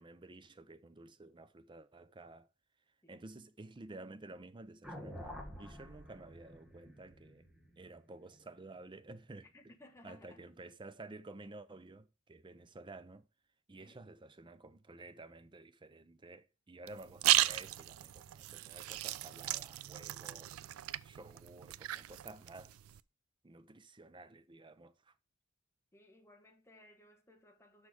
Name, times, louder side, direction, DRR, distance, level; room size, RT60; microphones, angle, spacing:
voice 1, 0.0-2.5 3.1-7.5 7.8-9.5 10.0-13.3 13.7-20.5 21.0-22.8 23.4-25.1, right 2 dB, 25° right, 0.5 m, -52 dB
sound 1, 4.8-9.1, equal, ahead, 1.3 m, -50 dB
voice 2, 9.5-10.4 13.8-14.1 25.9-27.9, left 1 dB, 15° left, 1.2 m, -60 dB
sound 2, 16.9-23.0, right 15 dB, 85° right, 0.3 m, -35 dB
6.3 x 5.8 x 4.9 m
head